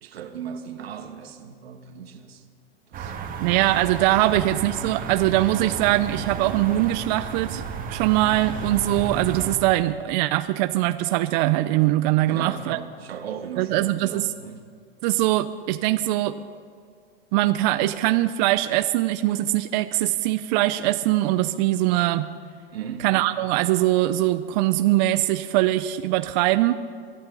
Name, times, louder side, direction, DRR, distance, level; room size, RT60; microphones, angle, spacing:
voice 1, 0.0-2.5 2.9-3.2 12.3-14.6 22.7-23.1, right 7 dB, 80° right, 7 dB, 1.6 m, -37 dB
sound 1, 2.9-9.6, right 5 dB, 30° right, 1.7 m, -33 dB
voice 2, 3.4-12.8 13.6-14.3 15.0-16.4 17.3-22.3 23.0-26.7, right 16 dB, 45° right, 11 dB, 0.6 m, -22 dB
25.0 x 12.0 x 4.0 m, 2.2 s
hypercardioid pair, 125°, 30 cm